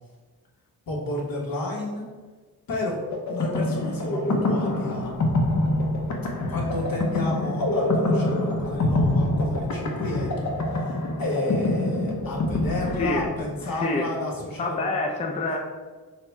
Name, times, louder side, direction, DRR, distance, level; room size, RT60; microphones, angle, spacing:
voice 1, 0.9-2.1 2.7-3.0 3.3-5.1 6.5-10.3 10.7-14.9 15.3-15.5, left 2 dB, 65° left, -2 dB, 1.1 m, -32 dB
sound 1, 3.1-13.6, left 1 dB, 50° left, 0.7 m, -25 dB
voice 2, 12.9-13.3 13.6-14.1 14.6-15.6, left 2 dB, 20° left, 1 dB, 0.4 m, -27 dB
4.1 x 2.1 x 4.4 m, 1.4 s
wide cardioid pair, 95°, 38 cm